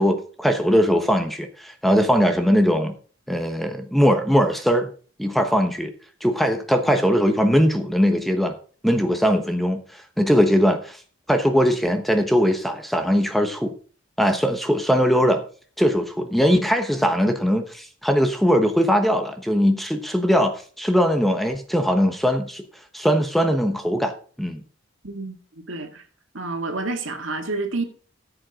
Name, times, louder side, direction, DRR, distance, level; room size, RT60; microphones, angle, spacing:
voice 1, 0.0-2.9 3.3-4.9 5.2-5.9 6.2-8.6 8.8-11.0 11.3-13.7 14.2-15.4 15.8-22.6 22.9-24.1 24.4-24.6, equal, ahead, 1.0 m, -20 dB
voice 2, 25.0-26.0 26.3-27.8, right 3 dB, 70° right, 2.1 m, -29 dB
14.5 x 7.9 x 3.7 m
head